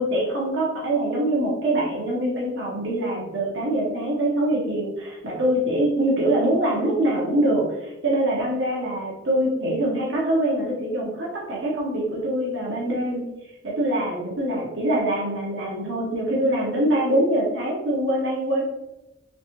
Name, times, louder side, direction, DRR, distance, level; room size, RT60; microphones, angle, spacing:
voice 1, 0.0-13.3 13.6-18.6, right 1 dB, 70° right, -4 dB, 0.9 m, -24 dB
3.2 x 3.2 x 2.8 m, 0.93 s
head